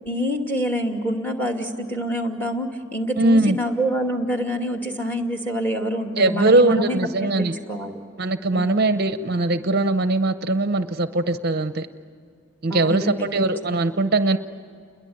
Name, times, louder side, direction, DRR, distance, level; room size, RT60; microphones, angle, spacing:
voice 1, 0.1-7.9 8.5-8.8 12.7-13.4, equal, 10° left, 3 dB, 2.4 m, -26 dB
voice 2, 3.2-3.6 6.2-7.6 8.2-11.9 12.6-14.4, right 2 dB, 45° right, 10 dB, 0.7 m, -20 dB
29.5 x 22.0 x 8.8 m, 2.4 s
head